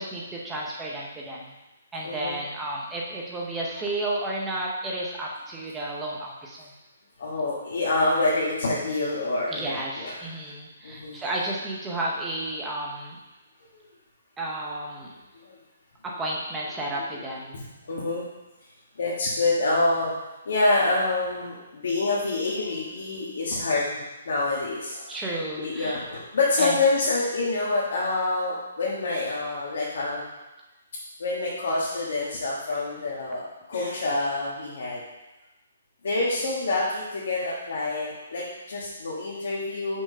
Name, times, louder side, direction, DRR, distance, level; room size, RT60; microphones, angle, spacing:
voice 1, 0.0-1.5 1.9-6.7 9.5-13.2 14.4-15.1 16.0-17.6 25.1-26.0 26.6-26.8, right 1 dB, 10° right, -3 dB, 0.7 m, -32 dB
voice 2, 2.0-2.4 7.2-10.1 10.8-11.2 13.7-13.8 15.4-15.5 17.5-18.2 19.0-20.2 20.4-25.1 25.6-30.2 31.2-35.0 36.0-40.0, left 2 dB, 60° left, -6 dB, 1.5 m, -27 dB
6.0 x 4.5 x 5.4 m, 1.0 s
hypercardioid pair, 175°, 0 cm